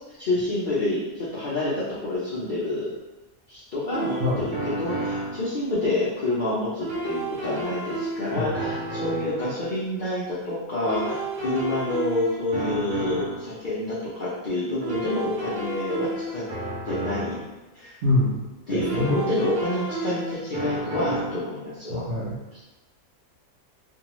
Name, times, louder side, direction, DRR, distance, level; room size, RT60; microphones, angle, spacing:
voice 1, 0.2-2.9 3.5-16.4 16.8-17.4 17.7-18.0 18.7-22.0 22.5-22.6, left 1 dB, 90° left, -9 dB, 0.4 m, -28 dB
sound 1, 3.9-5.5 6.8-9.5 10.8-13.5 14.8-17.5 18.8-21.5, right 1 dB, 80° right, 1.2 m, -31 dB
voice 2, 18.0-18.3 18.7-19.2 21.9-22.3, left 2 dB, 60° right, -6 dB, 0.7 m, -24 dB
2.6 x 2.3 x 2.9 m, 1.1 s
omnidirectional pair, 1.6 m